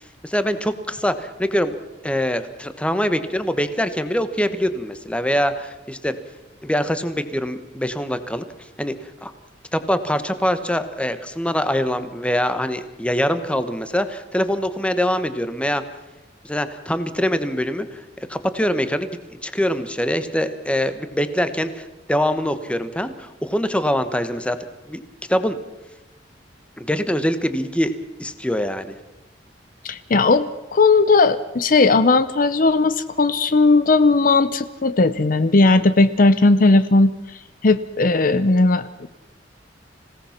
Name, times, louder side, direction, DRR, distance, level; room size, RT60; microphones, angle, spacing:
voice 1, 0.2-1.8 2.0-6.1 6.6-8.4 8.8-9.3 9.7-15.8 16.4-24.6 24.9-25.0 25.3-25.6 26.8-27.9 28.2-28.9, equal, 5° left, 11 dB, 1.2 m, -23 dB
voice 2, 29.8-30.5 30.7-37.1 37.6-39.1, left 3 dB, 50° left, 13 dB, 0.7 m, -16 dB
26.5 x 17.5 x 5.9 m, 1.0 s
head